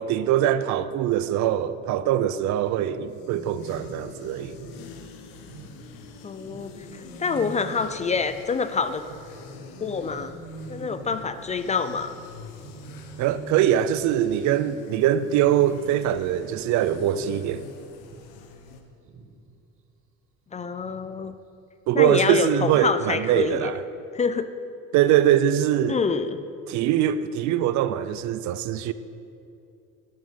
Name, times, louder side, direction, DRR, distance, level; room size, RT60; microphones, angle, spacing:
voice 1, 0.0-4.6 13.2-17.6 21.9-23.8 24.9-26.0 26.7-28.9, right 11 dB, 55° right, 0.6 m, -22 dB
sound 1, 2.8-14.5 14.8-14.9 15.2-16.2 16.5-17.6 17.9-19.5 20.8-21.2 21.6-21.7, right 4 dB, 40° right, 1.3 m, -44 dB
sound 2, 2.9-18.8, left 5 dB, 75° left, 1.3 m, -45 dB
voice 2, 6.2-9.0 9.8-10.3 10.7-12.2 20.5-21.3 21.9-23.7 24.1-24.4 25.9-26.4, left 5 dB, 20° left, 0.4 m, -26 dB
11.0 x 8.7 x 5.6 m
cardioid pair, 120°, 33 cm